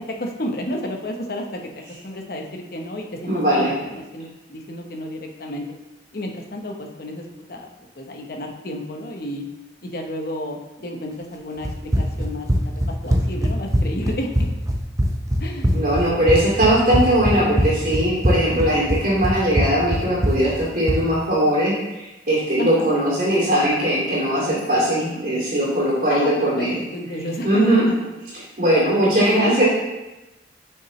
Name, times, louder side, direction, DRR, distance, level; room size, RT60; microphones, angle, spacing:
voice 1, 0.2-1.7 2.0-5.6 6.1-7.7 8.0-9.4 9.8-14.5 15.4-15.7 22.6-22.9 26.1-26.7 26.9-27.9 29.2-29.5, left 1 dB, 55° left, 1 dB, 0.9 m, -31 dB
voice 2, 3.3-3.7 15.7-26.8 27.4-27.8 28.6-29.6, right 1 dB, 50° right, -9 dB, 2.5 m, -20 dB
Run, 11.6-21.1, equal, 20° right, 0.5 m, -22 dB
7.0 x 5.7 x 3.2 m, 1.0 s
head